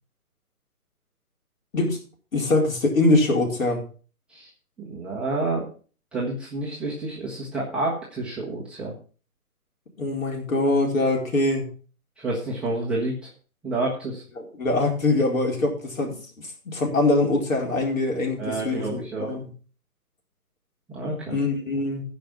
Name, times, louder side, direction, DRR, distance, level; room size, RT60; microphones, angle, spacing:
voice 1, 2.3-3.8 10.0-11.7 14.4-16.2 16.7-19.5 21.3-22.0, left 2 dB, 60° left, 1 dB, 4.6 m, -23 dB
voice 2, 4.9-5.6 6.1-8.9 12.2-13.1 13.6-14.2 18.4-19.3 20.9-21.3, right 2 dB, ahead, -7 dB, 1.1 m, -29 dB
15.5 x 5.3 x 6.0 m, 0.39 s
figure-of-eight pair, 145°, 45 cm